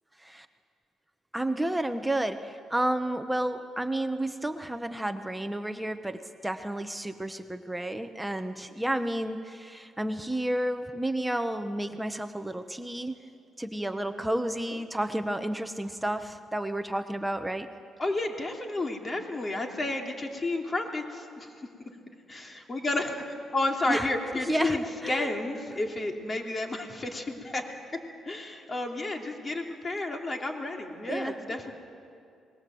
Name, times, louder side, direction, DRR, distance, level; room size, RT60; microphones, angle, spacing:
voice 1, 1.3-13.2 13.6-17.7 23.9-24.1 24.4-24.8 25.0-25.3 31.1-31.4, right 1 dB, 5° right, 8 dB, 1.0 m, -31 dB
voice 2, 18.0-21.5 22.3-27.7 28.3-31.7, left 2 dB, 30° left, 2 dB, 2.9 m, -31 dB
26.5 x 21.5 x 7.7 m, 2.4 s
cardioid pair, 90°, 0 cm